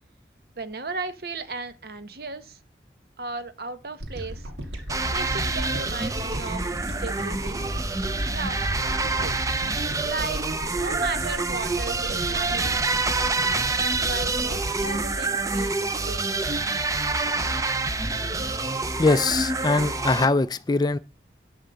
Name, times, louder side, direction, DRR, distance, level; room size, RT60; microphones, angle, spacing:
voice 1, 0.6-2.6 3.2-4.5 5.1-7.6 8.3-9.4 10.0-10.4 10.8-12.9 13.4-16.7, right 3 dB, 60° right, 0.9 m, -36 dB
sound 1, 4.0-16.5, equal, 85° right, 1.8 m, -36 dB
sound 2, 4.9-20.3, right 3 dB, 20° right, 0.6 m, -27 dB
voice 2, 19.0-21.0, left 3 dB, 25° left, 0.4 m, -22 dB
11.0 x 3.7 x 7.0 m
head